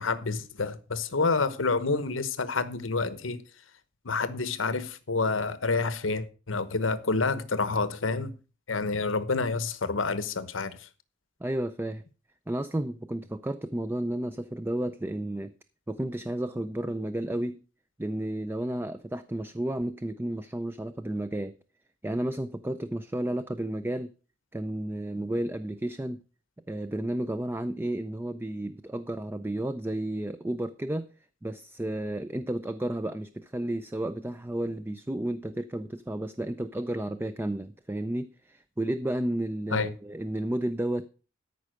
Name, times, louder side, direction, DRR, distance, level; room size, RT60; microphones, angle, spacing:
voice 1, 0.0-3.4 4.0-8.3 8.7-10.9 39.7-39.9, left 4 dB, 90° left, 1.1 m, -28 dB
voice 2, 11.4-12.0 12.5-15.5 15.9-17.6 18.0-21.5 22.0-24.1 24.5-26.2 26.7-31.1 31.4-41.1, right 1 dB, 10° right, 0.5 m, -32 dB
13.5 x 5.6 x 6.3 m
head